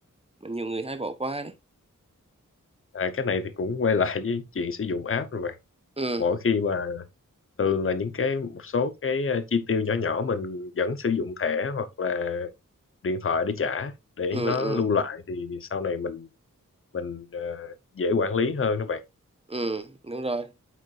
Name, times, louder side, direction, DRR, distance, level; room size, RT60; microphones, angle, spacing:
voice 1, 0.4-1.5 6.0-6.2 14.3-14.8 19.5-20.5, right 2 dB, 20° right, 0.9 m, -30 dB
voice 2, 2.9-5.6 6.2-7.0 7.6-12.5 13.0-16.3 16.9-19.0, left 5 dB, 45° left, 0.7 m, -27 dB
9.0 x 4.5 x 2.4 m
wide cardioid pair, 60°, 31 cm